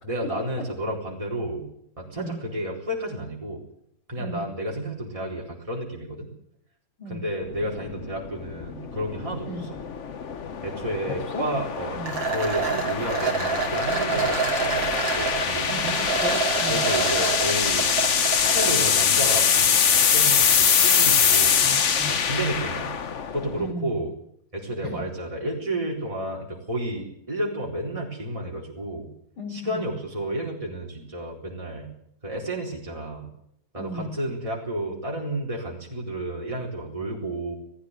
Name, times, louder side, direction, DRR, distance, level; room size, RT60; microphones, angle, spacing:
voice 1, 0.0-1.7 2.0-3.6 4.1-6.3 7.1-9.8 10.6-12.0 12.3-16.0 16.7-17.9 18.4-21.6 22.1-22.9 23.3-24.1 24.5-29.1 29.5-31.9 32.2-33.3 33.7-37.5, right 1 dB, 15° right, -2 dB, 4.3 m, -31 dB
voice 2, 4.2-4.5 7.0-7.2 9.4-9.7 11.0-11.5 11.9-12.2 15.7-16.9 21.6-22.6 23.6-24.0 24.8-25.0 29.4-29.8 33.8-34.1, equal, 70° left, -2 dB, 4.7 m, -35 dB
sound 1, 7.5-23.7, left 7 dB, 45° left, 1.2 m, -24 dB
sound 2, 12.1-18.7, right 4 dB, 65° right, 3.4 m, -27 dB
18.5 x 15.5 x 9.8 m, 0.72 s
omnidirectional pair, 2.2 m